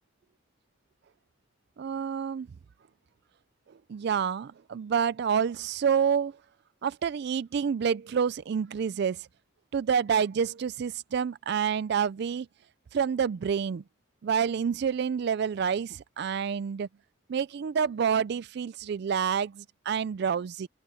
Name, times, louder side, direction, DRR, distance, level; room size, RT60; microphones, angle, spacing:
voice 1, 1.8-2.5 3.9-6.3 6.8-9.3 9.7-12.5 12.9-13.8 14.2-16.9 17.3-20.7, right 7 dB, 55° right, 0.3 m, -28 dB
head